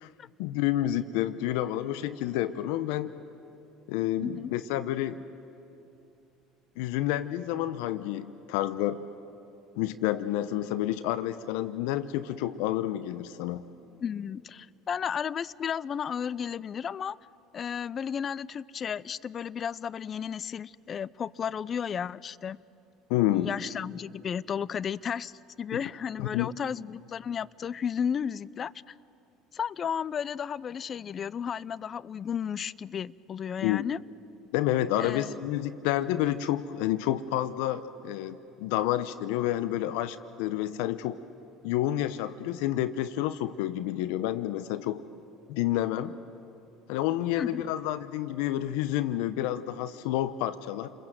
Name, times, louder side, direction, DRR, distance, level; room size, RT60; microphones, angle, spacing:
voice 1, 0.4-3.1 3.9-5.2 6.8-9.0 9.8-13.6 23.1-23.5 26.2-26.5 33.6-33.9 34.5-41.2 41.6-45.0 45.5-46.2 46.9-50.9, left 13 dB, 75° left, 14 dB, 0.7 m, -29 dB
voice 2, 14.0-17.2 17.5-22.6 23.3-28.9 29.5-34.0 35.0-35.4 47.4-47.7, left 7 dB, 40° left, 21 dB, 0.5 m, -33 dB
29.5 x 21.5 x 7.8 m, 2.8 s
hypercardioid pair, 75°, 0 cm